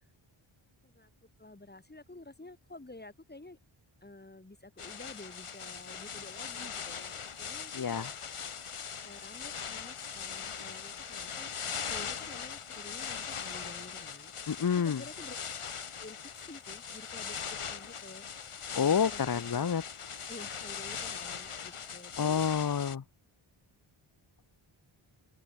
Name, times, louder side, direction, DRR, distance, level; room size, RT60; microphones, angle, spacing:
voice 1, 1.4-3.6 4.0-8.1 9.0-11.5 11.9-14.3 14.8-15.4 16.0-16.2 16.5-18.3 18.8-19.7 20.3-22.4, left 2 dB, 20° left, 3.8 m, -50 dB
sound 1, 4.8-23.0, left 6 dB, 85° left, 3.6 m, -40 dB
voice 2, 7.7-8.1 14.5-15.0 18.7-19.8 22.2-23.0, left 7 dB, 45° left, 1.0 m, -28 dB
open air
wide cardioid pair, 120°, 50 cm